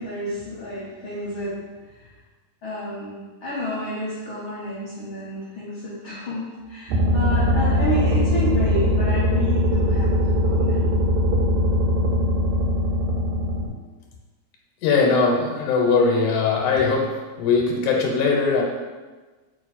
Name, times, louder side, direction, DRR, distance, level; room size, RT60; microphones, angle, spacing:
voice 1, 0.0-2.1 2.6-10.8, equal, 70° left, -9 dB, 1.2 m, -30 dB
sound 1, 6.9-13.7, left 1 dB, 85° right, 2.0 m, -21 dB
voice 2, 14.8-17.1 17.4-18.6, left 4 dB, 90° left, -1 dB, 2.0 m, -20 dB
4.5 x 2.4 x 4.0 m, 1.3 s
omnidirectional pair, 3.4 m